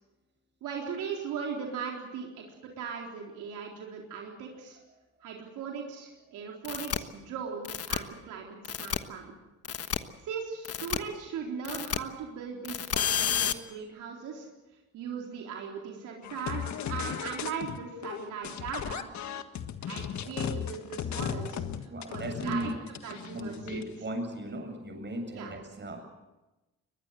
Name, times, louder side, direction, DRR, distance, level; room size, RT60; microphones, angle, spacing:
voice 1, 0.6-4.8 5.2-9.3 10.2-14.5 14.9-19.1 19.8-23.9 25.3-25.5, right 6 dB, 85° right, 0 dB, 4.0 m, -39 dB
sound 1, 6.6-7.0 7.6-8.0 8.6-9.0 9.6-10.0 10.6-11.0 11.6-12.0 12.6-13.5, left 8 dB, 50° left, 1.4 m, -30 dB
sound 2, 16.2-17.8 18.0-24.0, left 8 dB, 70° left, 1.6 m, -36 dB
voice 2, 21.9-22.7 23.3-26.0, right 1 dB, 35° right, 4 dB, 7.5 m, -36 dB
22.0 x 21.0 x 7.8 m, 1.1 s
cardioid pair, 90°, 30 cm